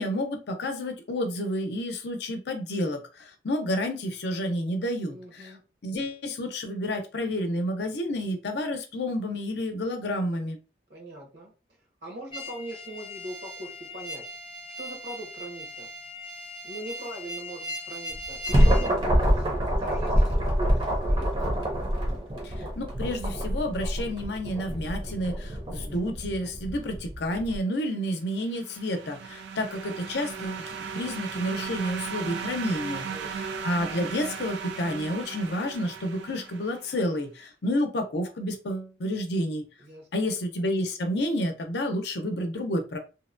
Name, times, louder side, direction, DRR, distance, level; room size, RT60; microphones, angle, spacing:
voice 1, 0.0-5.5 5.8-10.6 22.4-30.6 30.9-33.1 33.4-39.6 40.1-43.0, left 1 dB, 70° left, 5 dB, 0.6 m, -30 dB
voice 2, 5.1-5.6 10.9-11.5 12.0-14.2 14.8-15.9 16.6-21.3 33.1-33.6 39.8-40.3, right 1 dB, 70° right, 0 dB, 1.0 m, -41 dB
sound 1, 12.3-18.9, left 1 dB, 25° left, 0.5 m, -39 dB
sound 2, 18.1-27.6, equal, 25° right, 0.6 m, -26 dB
sound 3, 28.4-37.0, right 6 dB, 85° right, 0.4 m, -37 dB
2.8 x 2.1 x 2.5 m, 0.32 s
head